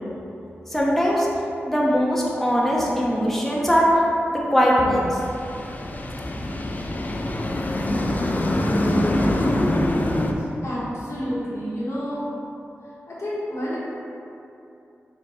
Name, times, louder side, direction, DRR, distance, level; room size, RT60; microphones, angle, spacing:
voice 1, 0.7-1.3 1.7-3.9 4.3-5.2, equal, 5° left, -5 dB, 0.7 m, -20 dB
sound 1, 5.0-10.3, left 1 dB, 35° left, 0.4 m, -24 dB
voice 2, 10.6-12.3 13.1-13.8, equal, 75° left, -8 dB, 1.1 m, -29 dB
4.2 x 2.2 x 4.2 m, 2.8 s
cardioid pair, 55°, 5 cm